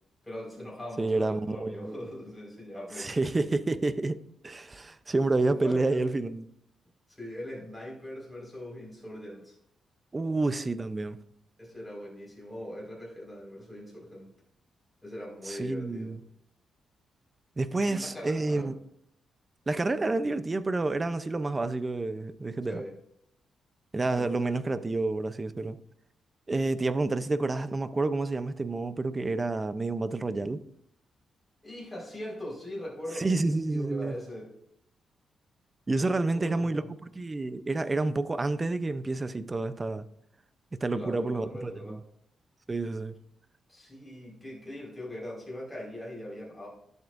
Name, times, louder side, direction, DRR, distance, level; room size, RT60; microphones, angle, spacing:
voice 1, 0.2-3.2 5.4-6.1 7.1-9.5 11.6-14.3 15.0-16.1 17.8-18.7 22.7-23.0 24.1-24.7 31.6-34.5 35.9-36.9 40.9-42.0 43.7-46.7, left 1 dB, 5° left, 4.6 m, -41 dB
voice 2, 1.0-1.9 3.0-4.2 4.4-6.5 10.1-11.2 15.5-16.2 17.6-18.7 19.7-22.8 23.9-25.8 26.5-30.6 33.2-34.2 35.9-40.1 40.7-42.0 42.7-43.2, right 2 dB, 20° right, 0.5 m, -29 dB
18.5 x 8.0 x 2.5 m
wide cardioid pair, 155°, 0 cm